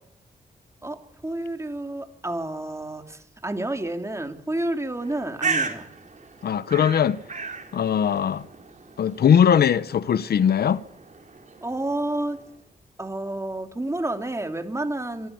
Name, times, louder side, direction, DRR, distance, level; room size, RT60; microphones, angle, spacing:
voice 1, 0.8-5.9 11.6-12.4 13.0-15.3, right 1 dB, 15° right, 3.0 m, -30 dB
Bird, 4.9-12.5, right 4 dB, 50° right, 4.5 m, -35 dB
voice 2, 6.4-7.2 7.7-8.4 9.0-10.8, left 8 dB, 75° left, 0.9 m, -20 dB
27.0 x 14.0 x 9.5 m
cardioid pair, 70°, 16 cm